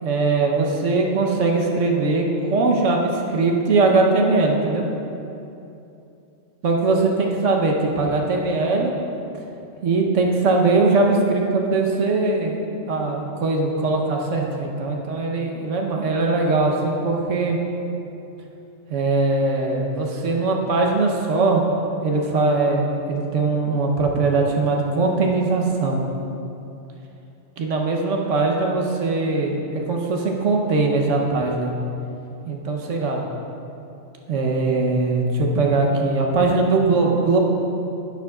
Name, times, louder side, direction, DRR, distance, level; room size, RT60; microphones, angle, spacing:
voice 1, 0.0-4.9 6.6-8.9 9.8-12.6 12.9-17.6 18.9-21.6 22.0-26.0 27.6-31.7 32.5-33.2 34.3-37.4, right 3 dB, 75° right, 0 dB, 1.3 m, -21 dB
10.0 x 9.5 x 2.4 m, 2.8 s
omnidirectional pair, 1.3 m